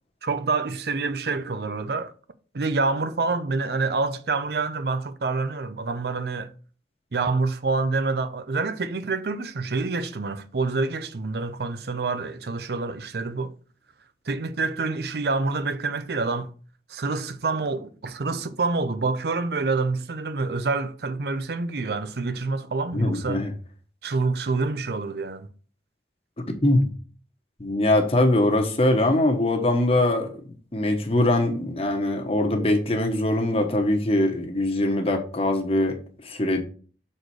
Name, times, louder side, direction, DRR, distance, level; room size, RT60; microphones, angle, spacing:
voice 1, 0.2-2.1 2.5-6.5 7.1-13.5 14.3-16.5 16.9-23.4 24.0-25.5, right 3 dB, 60° right, 0.6 m, -27 dB
voice 2, 22.9-23.5 26.6-26.9 27.6-30.3 30.7-36.0 36.2-36.6, left 1 dB, 35° left, 1.1 m, -22 dB
6.4 x 4.3 x 4.7 m
head